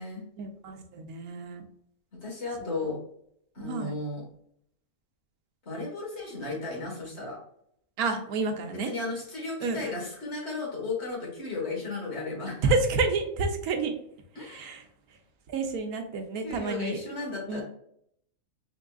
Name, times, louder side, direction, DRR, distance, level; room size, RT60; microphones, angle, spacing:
voice 1, 0.4-1.6 2.6-2.8 3.6-3.9 8.0-8.9 9.6-9.9 12.6-13.9 14.4-14.8 15.5-17.0 17.5-17.6, right 3 dB, 90° right, 6 dB, 1.2 m, -29 dB
voice 2, 2.2-3.0 3.6-4.2 5.7-7.4 8.8-12.7 14.4-14.8 16.4-17.6, left 3 dB, 50° left, -2 dB, 1.7 m, -34 dB
4.6 x 3.6 x 2.3 m, 0.69 s
omnidirectional pair, 1.5 m